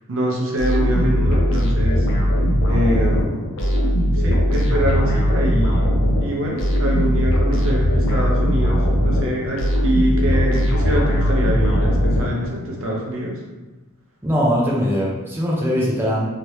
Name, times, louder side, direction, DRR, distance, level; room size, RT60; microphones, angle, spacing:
voice 1, 0.1-2.1 2.7-3.5 4.1-5.9 6.2-13.4, equal, 65° right, -2 dB, 0.7 m, -25 dB
sound 1, 0.6-12.8, equal, 60° left, 0.6 m, -19 dB
voice 2, 14.2-16.3, equal, 10° right, -5 dB, 0.5 m, -21 dB
2.9 x 2.9 x 3.1 m, 1.1 s
head